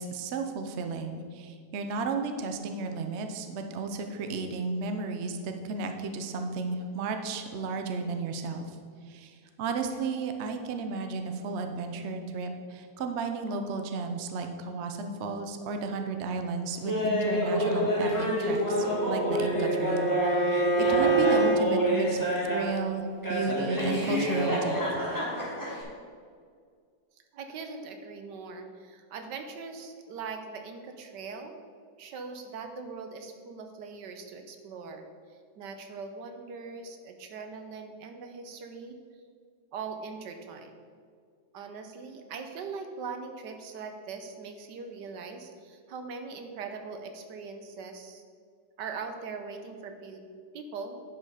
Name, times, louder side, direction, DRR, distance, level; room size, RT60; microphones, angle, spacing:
voice 1, 0.0-8.7 9.1-23.0 23.3-24.8, right 4 dB, 55° right, 5 dB, 0.8 m, -33 dB
Laughter, 16.8-22.8 23.2-25.8, equal, 10° left, 1.8 m, -28 dB
Bowed string instrument, 18.4-21.6, right 3 dB, 75° left, 1.7 m, -26 dB
voice 2, 27.3-31.5 32.0-39.0 39.7-40.8 41.5-48.2 48.8-50.2 50.5-51.0, right 5 dB, 75° right, 5 dB, 1.4 m, -41 dB
10.5 x 5.3 x 4.9 m, 2.1 s
omnidirectional pair, 1.9 m